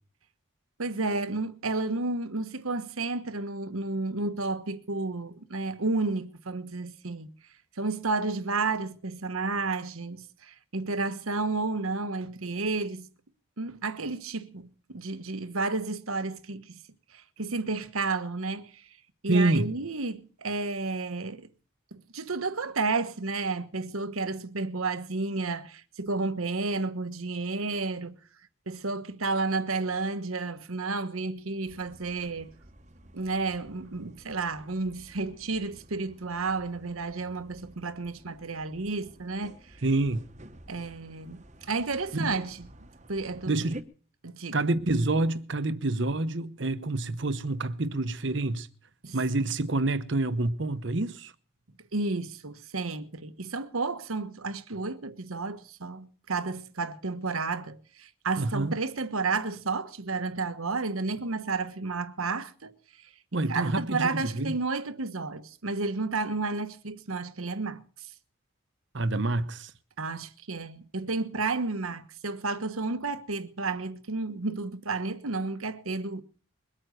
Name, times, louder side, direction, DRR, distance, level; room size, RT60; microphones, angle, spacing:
voice 1, 0.8-7.3 7.8-13.1 13.6-16.8 17.1-18.8 19.2-21.5 21.9-28.2 28.7-32.5 33.1-39.8 40.7-42.7 43.1-43.7 44.2-44.6 49.0-49.2 51.9-68.1 70.0-76.2, right 3 dB, 85° right, 1.3 m, -32 dB
voice 2, 19.3-19.7 39.8-40.3 42.2-42.3 43.5-43.9 44.5-48.7 49.1-51.3 58.4-58.7 63.3-64.5 68.9-69.7, right 2 dB, 55° right, 1.0 m, -27 dB
sound 1, 31.7-43.8, right 1 dB, 35° right, 1.0 m, -51 dB
22.0 x 8.9 x 6.5 m
head